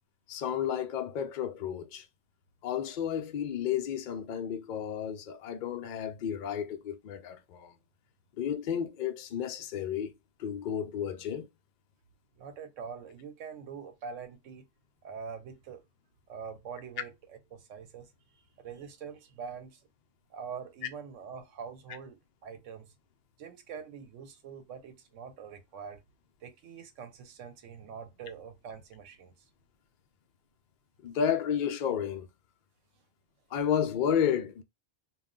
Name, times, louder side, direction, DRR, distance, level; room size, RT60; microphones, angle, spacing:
voice 1, 0.3-2.1 2.6-7.7 8.3-10.1 10.4-11.5 31.0-32.3 33.5-34.6, left 8 dB, 60° left, 0.5 m, -32 dB
voice 2, 12.4-14.7 15.0-15.8 16.3-19.8 20.3-22.9 23.4-26.0 26.4-29.5, right 6 dB, 85° right, 1.0 m, -44 dB
2.3 x 2.1 x 3.6 m
omnidirectional pair, 1.2 m